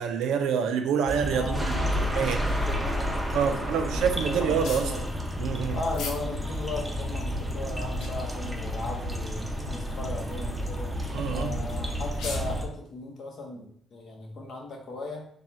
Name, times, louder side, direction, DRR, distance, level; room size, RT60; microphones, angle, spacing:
voice 1, 0.0-2.6 3.3-4.9 5.4-5.8 11.1-11.6, right 7 dB, 85° right, 0.5 m, -27 dB
sound 1, 1.1-12.6, equal, 5° right, 0.6 m, -31 dB
voice 2, 1.3-2.0 2.4-5.1 5.7-15.3, left 2 dB, 55° left, 1.0 m, -37 dB
sound 2, 4.6-4.9 5.9-6.2 6.8-6.9 7.7-8.3 9.0-9.3 9.6-9.7 10.4-10.6 11.6-11.7 12.0-12.6, left 4 dB, 85° left, 0.6 m, -39 dB
3.6 x 2.3 x 4.3 m
cardioid pair, 90°, 0 cm